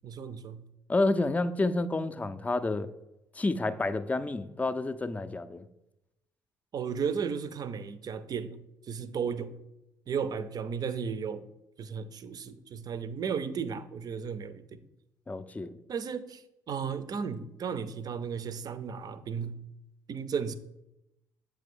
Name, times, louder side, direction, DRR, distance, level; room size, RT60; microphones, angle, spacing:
voice 1, 0.0-0.6 6.7-8.6 8.9-9.6 10.1-11.4 11.8-14.8 15.9-16.4 16.7-19.6 20.1-20.5, right 6 dB, 45° right, 0.5 m, -34 dB
voice 2, 0.9-2.9 3.4-5.6 15.3-15.7, left 2 dB, 15° left, 0.4 m, -29 dB
7.5 x 3.3 x 5.3 m
hypercardioid pair, 50°, 10 cm